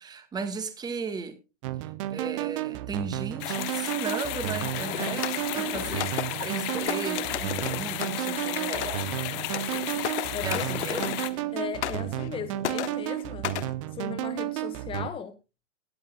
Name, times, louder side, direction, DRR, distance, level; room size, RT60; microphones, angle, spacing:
voice 1, 0.0-1.4 1.8-9.1 10.4-11.2, right 5 dB, 10° right, 9 dB, 1.4 m, -36 dB
sound 1, 1.6-15.1, right 14 dB, 25° right, 0.6 m, -32 dB
sound 2, 3.4-11.3, left 17 dB, 30° left, 1.2 m, -34 dB
sound 3, 4.6-11.5 11.8-12.4 12.6-13.7, left 11 dB, 60° left, 1.4 m, -35 dB
voice 2, 10.3-11.1 11.5-13.5 13.9-15.4, left 8 dB, 15° left, 10 dB, 1.5 m, -37 dB
18.0 x 10.5 x 2.3 m, 0.28 s
hypercardioid pair, 135°, 38 cm